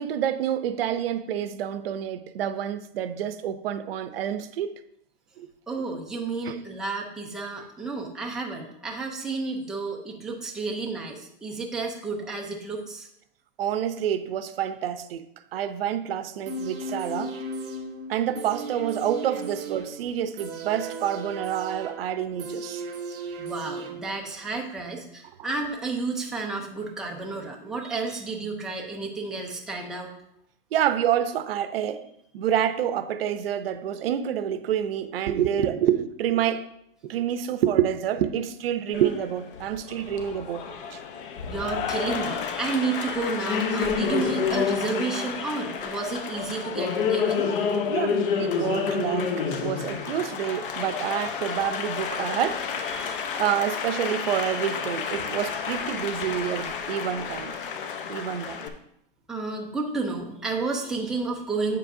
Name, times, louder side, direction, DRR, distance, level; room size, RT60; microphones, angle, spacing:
voice 1, 0.0-4.8 5.4-5.5 6.5-6.6 13.6-15.2 15.5-17.3 18.1-22.8 30.7-32.0 32.3-36.7 37.0-41.0 47.9-52.6 53.4-57.5 58.1-58.7, right 10 dB, 80° right, 0.7 m, -28 dB
voice 2, 5.7-13.1 23.4-30.1 41.5-47.5 52.9-53.3 59.3-61.8, right 4 dB, ahead, 0.6 m, -31 dB
sound 1, 16.5-24.4 24.8-24.9, right 3 dB, 65° right, 2.3 m, -36 dB
Applause, 38.9-58.7, left 6 dB, 65° left, 0.9 m, -29 dB
8.6 x 7.4 x 2.7 m
supercardioid pair, 160°, 29 cm